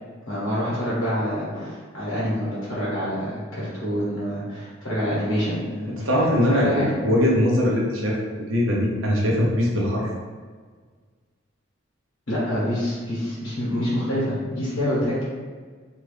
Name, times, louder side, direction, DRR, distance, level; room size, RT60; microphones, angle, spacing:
voice 1, 0.3-5.9 6.5-6.9 12.3-15.2, equal, 80° left, -9 dB, 1.2 m, -26 dB
voice 2, 6.0-8.2 8.5-10.1, left 1 dB, 80° right, -3 dB, 0.7 m, -21 dB
2.9 x 2.4 x 3.2 m, 1.5 s
head